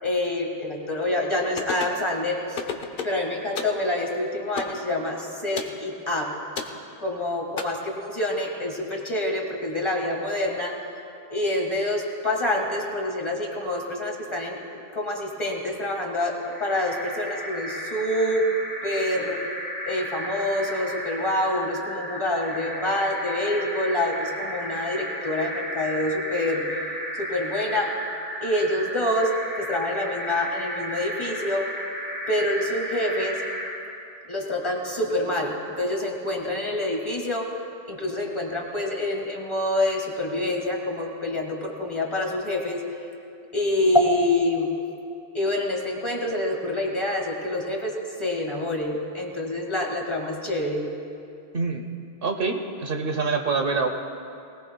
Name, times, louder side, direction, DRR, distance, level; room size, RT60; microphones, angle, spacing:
voice 1, 0.0-2.6 3.0-6.4 7.0-10.8 11.3-18.5 18.8-19.4 19.8-27.9 28.4-31.7 32.3-33.4 34.3-37.5 37.9-42.8 43.5-44.7 45.3-50.9, left 1 dB, 25° left, 0 dB, 1.7 m, -27 dB
sound 1, 1.6-2.0 2.6-3.2 3.6-3.8 4.6-4.8 5.6-5.8 6.6-6.8 7.6-7.7, left 6 dB, 60° left, 1.1 m, -31 dB
sound 2, 16.4-33.8, right 1 dB, 80° right, 3.4 m, -34 dB
voice 2, 51.5-51.9 52.2-53.9, right 4 dB, 60° right, 5 dB, 1.1 m, -25 dB
20.5 x 19.0 x 2.3 m, 2.5 s
omnidirectional pair, 1.1 m